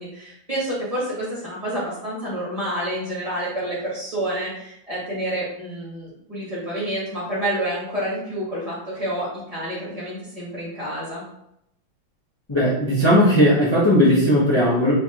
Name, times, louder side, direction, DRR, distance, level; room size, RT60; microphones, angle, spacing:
voice 1, 0.0-11.2, right 1 dB, 20° right, -7 dB, 1.2 m, -28 dB
voice 2, 12.5-14.9, equal, 45° left, -8 dB, 0.3 m, -17 dB
4.7 x 3.4 x 2.9 m, 0.80 s
omnidirectional pair, 2.3 m